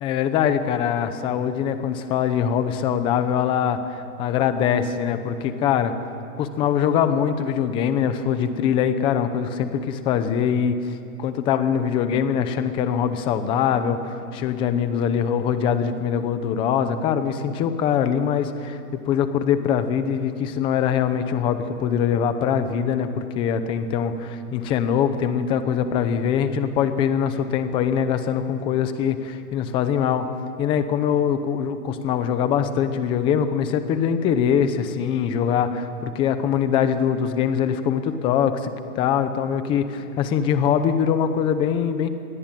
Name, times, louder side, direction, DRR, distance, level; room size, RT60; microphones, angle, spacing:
voice 1, 0.0-5.9 6.4-10.8 11.2-18.8 19.1-30.2 30.6-42.1, left 8 dB, 10° left, 10 dB, 0.7 m, -23 dB
28.5 x 22.0 x 9.1 m, 2.6 s
hypercardioid pair, 165°, 46 cm